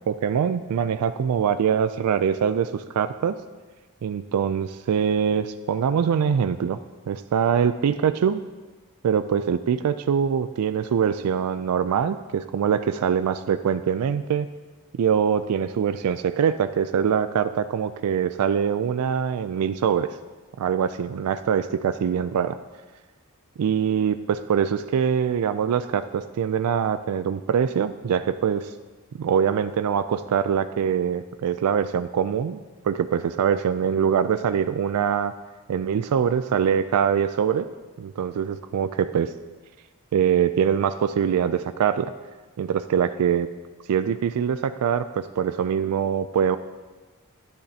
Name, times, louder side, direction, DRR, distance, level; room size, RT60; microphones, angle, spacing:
voice 1, 0.1-3.4 4.0-6.8 7.1-8.4 9.0-14.5 14.9-20.2 20.6-22.6 23.6-28.7 29.2-35.3 35.7-37.7 38.0-39.3 40.1-42.1 42.6-43.5 43.9-46.6, right 7 dB, 85° right, 11 dB, 0.3 m, -23 dB
12.0 x 10.5 x 2.8 m, 1.3 s
head